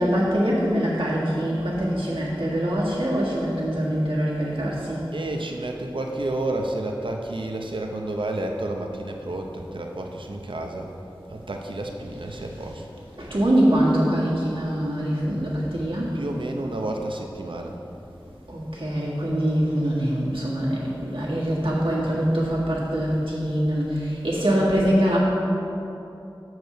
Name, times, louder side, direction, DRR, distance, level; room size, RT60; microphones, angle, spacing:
voice 1, 0.0-5.1 13.2-16.1 18.5-25.2, equal, 85° right, -6 dB, 1.7 m, -23 dB
voice 2, 5.1-10.9 11.3-12.9 16.1-17.8, right 2 dB, 70° right, 2 dB, 0.7 m, -30 dB
6.7 x 4.7 x 6.5 m, 2.8 s
wide cardioid pair, 45°, 9 cm